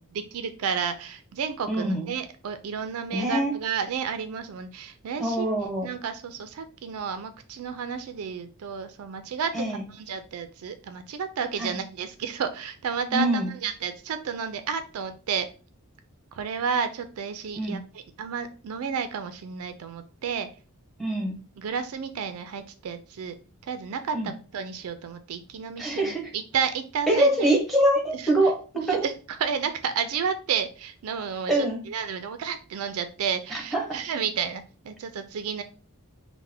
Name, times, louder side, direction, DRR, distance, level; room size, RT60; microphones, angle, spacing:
voice 1, 0.1-5.5 5.8-15.5 16.3-20.5 21.6-23.3 23.7-27.5 28.1-28.3 28.7-35.6, right 6 dB, 70° right, 9 dB, 0.4 m, -31 dB
voice 2, 1.7-2.1 3.1-3.5 5.2-5.9 9.5-9.8 11.6-11.8 13.1-13.5 17.6-17.8 21.0-21.4 24.1-24.3 25.8-26.3 27.1-29.1 31.5-31.8 33.7-34.0, right 1 dB, ahead, 1 dB, 0.9 m, -24 dB
3.3 x 2.1 x 3.4 m, 0.35 s
head